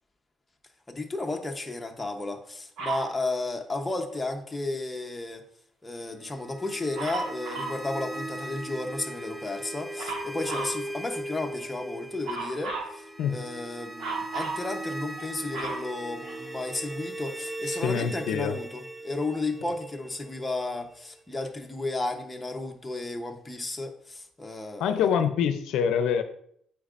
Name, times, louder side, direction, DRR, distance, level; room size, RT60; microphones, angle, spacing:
voice 1, 0.9-5.4 5.8-25.1, left 2 dB, 10° left, 3 dB, 0.8 m, -33 dB
Dog, 2.8-3.1 6.9-7.8 10.0-10.8 12.2-12.9 14.0-14.6 15.2-16.7 17.4-17.5, right 3 dB, 80° right, 1.5 m, -34 dB
sound 1, 6.3-21.2, right 1 dB, 10° right, 0.3 m, -39 dB
voice 2, 17.7-18.6 24.8-26.2, left 7 dB, 80° left, 9 dB, 0.5 m, -25 dB
8.5 x 4.6 x 2.5 m, 0.66 s
cardioid pair, 110°, 0 cm